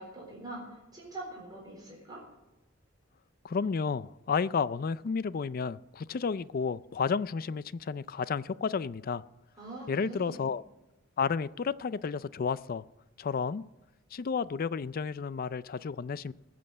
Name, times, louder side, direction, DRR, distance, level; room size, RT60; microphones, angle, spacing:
voice 1, 0.0-2.2 9.6-10.4, right 2 dB, 20° right, -2 dB, 4.0 m, -43 dB
voice 2, 3.4-9.2 9.9-10.6 11.2-12.8 13.2-13.6 14.1-16.3, left 5 dB, 50° left, 17 dB, 0.4 m, -31 dB
20.5 x 7.6 x 7.8 m, 1.0 s
head